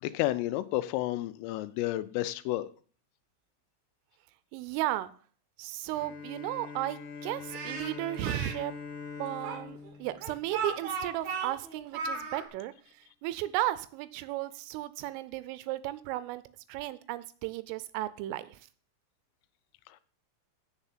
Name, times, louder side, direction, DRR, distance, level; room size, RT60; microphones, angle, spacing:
voice 1, 0.0-2.7, left 15 dB, 85° left, 3.2 m, -31 dB
voice 2, 4.5-5.1 5.6-8.7 9.2-16.4 16.7-18.6, right 15 dB, 85° right, 3.0 m, -35 dB
Bowed string instrument, 5.9-11.4, left 5 dB, 60° left, 2.2 m, -44 dB
Speech, 7.5-8.5 9.4-12.4, right 5 dB, 60° right, 2.0 m, -35 dB
8.0 x 6.8 x 7.3 m
omnidirectional pair, 5.9 m